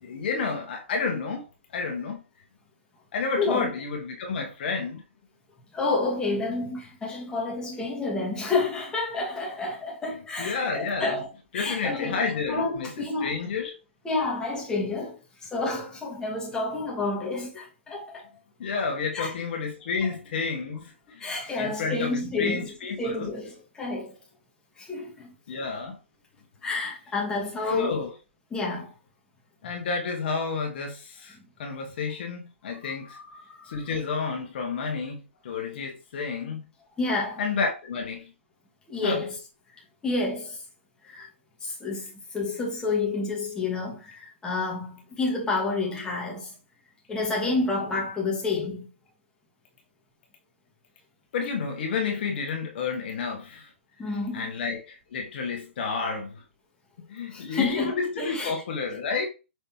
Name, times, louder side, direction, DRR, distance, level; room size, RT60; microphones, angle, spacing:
voice 1, 0.0-1.4 1.7-2.2 3.1-5.0 10.4-11.2 11.5-12.9 13.2-13.8 18.6-21.2 21.6-23.3 25.5-26.0 27.7-28.1 29.6-33.2 33.7-36.7 37.4-38.3 39.0-39.2 51.3-53.7 54.0-56.4 57.1-59.3, left 5 dB, 50° left, 1.3 m, -30 dB
voice 2, 3.4-3.7 5.7-11.3 11.5-13.4 14.0-18.2 19.1-19.3 21.2-24.2 24.8-25.3 26.6-27.9 28.5-28.9 32.8-33.9 37.0-37.4 38.9-39.4 40.0-40.6 41.0-41.3 41.6-46.5 47.1-48.9 54.0-54.5 57.3-58.6, left 3 dB, 10° left, 1.4 m, -30 dB
5.7 x 3.2 x 2.9 m
hypercardioid pair, 135°, 7 cm